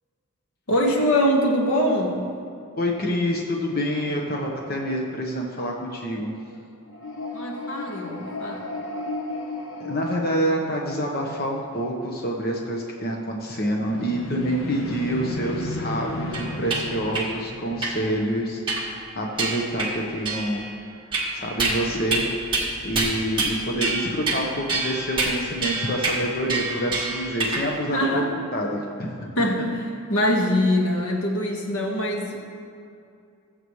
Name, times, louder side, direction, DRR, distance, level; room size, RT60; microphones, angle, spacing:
voice 1, 0.7-2.3 7.3-8.7 27.9-28.2 29.4-29.8 30.1-32.4, equal, 85° left, 0 dB, 1.7 m, -23 dB
voice 2, 2.8-6.6 7.5-7.7 9.8-20.6 21.3-22.3 22.8-29.2, equal, 45° left, -1 dB, 1.2 m, -27 dB
sound 1, 6.8-11.2 13.8-18.8, left 1 dB, 65° left, 1.1 m, -34 dB
sound 2, 16.3-16.8 17.1-17.3 17.8-18.0 18.7-19.0 19.4-19.9 20.3-20.7 21.1-21.8 22.1-22.3 22.5-22.7 22.9-23.5 23.8-24.4 24.7-27.7, right 3 dB, 25° right, 1.8 m, -26 dB
19.5 x 7.9 x 3.2 m, 2.5 s
head